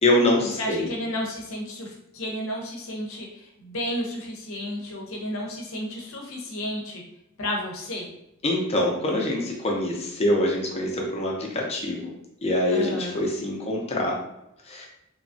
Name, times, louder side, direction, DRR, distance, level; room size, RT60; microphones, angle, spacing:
voice 1, 0.0-0.9 8.4-12.1 12.4-14.2 14.7-14.9, left 1 dB, 30° left, -1 dB, 0.6 m, -24 dB
voice 2, 0.6-7.0 7.4-8.1 12.7-13.2, left 1 dB, 70° left, 0 dB, 0.7 m, -32 dB
3.0 x 2.3 x 2.6 m, 0.83 s
head